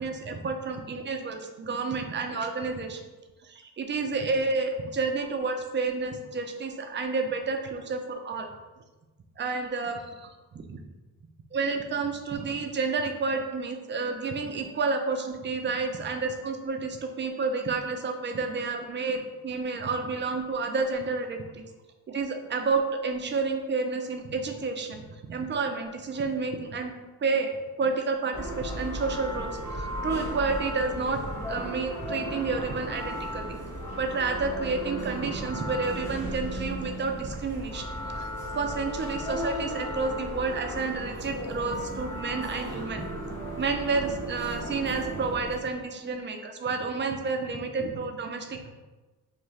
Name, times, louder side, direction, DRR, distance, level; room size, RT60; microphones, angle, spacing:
voice 1, 0.0-3.0 3.4-8.5 9.4-10.3 10.5-10.8 11.5-21.6 22.1-26.9 27.2-27.5 27.8-33.6 34.0-37.9 38.1-43.0 43.4-48.7, right 4 dB, 25° right, 5 dB, 0.4 m, -30 dB
sound 1, 28.3-45.6, equal, 5° left, 0.9 m, -35 dB
2.5 x 2.3 x 3.2 m, 1.2 s
hypercardioid pair, 45°, 44 cm